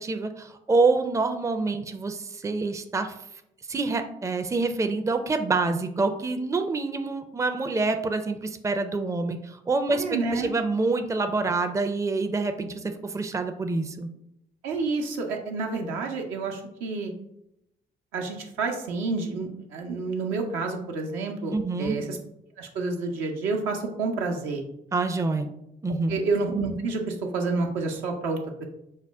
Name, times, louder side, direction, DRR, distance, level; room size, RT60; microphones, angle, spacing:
voice 1, 0.0-3.1 3.7-14.1 21.5-22.0 24.9-25.5 25.8-26.2, right 3 dB, 15° right, 7 dB, 0.5 m, -26 dB
voice 2, 9.9-10.5 14.6-17.1 18.1-22.2 22.6-24.6 26.1-28.7, right 3 dB, 75° right, 2 dB, 0.7 m, -29 dB
5.4 x 2.1 x 3.4 m, 0.81 s
hypercardioid pair, 45°, 20 cm